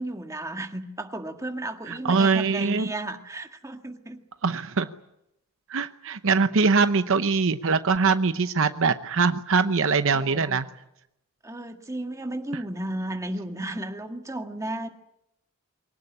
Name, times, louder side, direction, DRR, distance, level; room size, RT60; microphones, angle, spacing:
voice 1, 0.0-4.2 10.1-10.6 11.4-14.9, right 1 dB, 15° right, 5 dB, 1.8 m, -34 dB
voice 2, 1.9-2.9 4.4-4.9 5.7-10.7, right 4 dB, 65° right, 10 dB, 0.8 m, -22 dB
24.0 x 18.0 x 9.9 m, 0.85 s
head